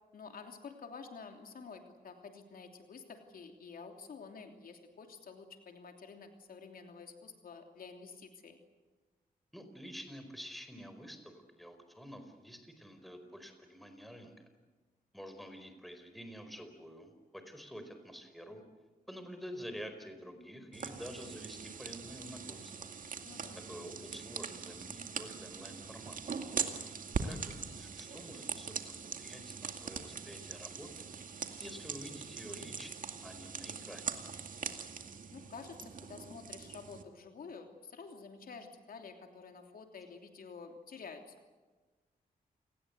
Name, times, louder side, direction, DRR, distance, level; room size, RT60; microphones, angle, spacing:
voice 1, 0.1-8.6 23.2-23.6 35.3-41.3, left 5 dB, 70° left, 4 dB, 3.1 m, -50 dB
voice 2, 9.5-14.5 15.1-18.6 19.1-22.9 23.5-26.2 27.2-31.1 31.6-34.1, equal, ahead, 7 dB, 4.7 m, -48 dB
sound 1, 20.7-37.0, right 5 dB, 60° right, 2.2 m, -42 dB
28.5 x 19.5 x 8.2 m, 1.3 s
cardioid pair, 100°, 15 cm